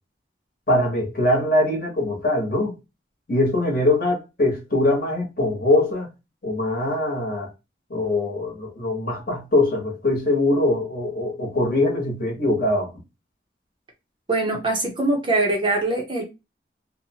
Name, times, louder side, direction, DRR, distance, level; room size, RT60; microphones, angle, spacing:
voice 1, 0.7-2.8 3.3-6.1 6.4-7.5 7.9-12.9, left 1 dB, 50° left, 1.0 m, -22 dB
voice 2, 14.3-16.2, right 2 dB, 25° right, 0.6 m, -22 dB
2.7 x 2.0 x 2.8 m
head